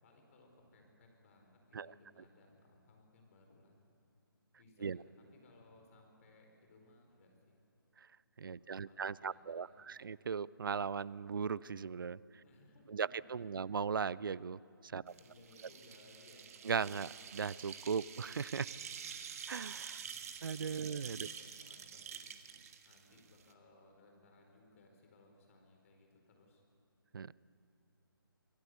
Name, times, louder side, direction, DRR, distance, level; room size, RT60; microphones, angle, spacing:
voice 1, 0.0-3.7 4.5-7.6 8.5-10.2 12.4-13.0 13.4-13.7 15.0-16.6 20.0-20.3 20.8-22.3 22.8-26.6, left 2 dB, 35° left, 3 dB, 4.7 m, -64 dB
voice 2, 8.4-12.2 12.9-15.0 16.6-18.7 19.5-20.0 20.4-21.3 27.1-27.3, right 6 dB, 65° right, 21 dB, 0.5 m, -38 dB
sound 1, 15.1-23.5, right 7 dB, 40° right, 1.4 m, -48 dB
25.5 x 16.5 x 8.1 m, 2.5 s
figure-of-eight pair, 150°, 12 cm